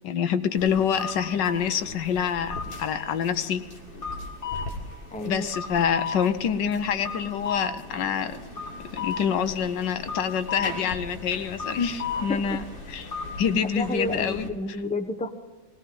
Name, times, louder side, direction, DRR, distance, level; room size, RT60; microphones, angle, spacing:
voice 1, 0.0-3.6 5.2-8.4 8.9-12.6 12.9-13.1 13.4-14.5, left 7 dB, 75° left, 10 dB, 1.5 m, -26 dB
sound 1, 0.6-14.5, left 4 dB, 30° left, 2.0 m, -36 dB
voice 2, 5.1-5.5 12.1-12.4 13.7-15.3, left 2 dB, 10° left, 6 dB, 0.4 m, -30 dB
20.0 x 17.5 x 3.9 m, 1.3 s
omnidirectional pair, 2.0 m